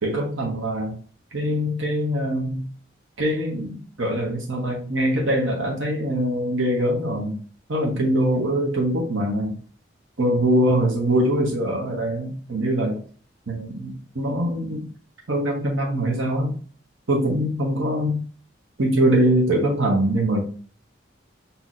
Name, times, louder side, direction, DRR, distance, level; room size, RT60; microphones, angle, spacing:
voice 1, 0.0-1.0 1.3-2.7 3.2-7.3 7.7-9.6 10.2-13.0 13.5-14.9 15.3-16.6 17.1-18.3 18.8-20.4, right 1 dB, 85° right, -1 dB, 0.9 m, -23 dB
5.7 x 2.8 x 2.4 m, 0.42 s
head